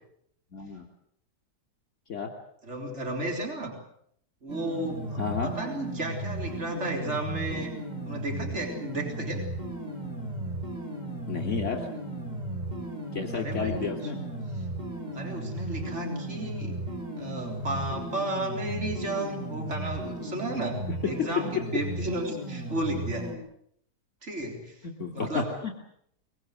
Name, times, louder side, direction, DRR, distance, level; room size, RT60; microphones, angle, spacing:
voice 1, 0.5-0.8 2.1-2.3 5.2-5.5 11.3-11.9 13.1-14.2 24.8-25.7, left 5 dB, 45° left, 2 dB, 3.2 m, -31 dB
voice 2, 2.6-3.7 4.4-7.7 8.1-9.4 13.3-13.9 14.6-14.7 15.1-16.8 17.2-23.4 24.2-24.9 25.1-25.5, right 1 dB, 40° right, 2 dB, 4.2 m, -33 dB
sound 1, 4.5-23.4, right 1 dB, 25° right, 5.0 m, -35 dB
23.5 x 22.0 x 7.7 m, 0.70 s
omnidirectional pair, 1.8 m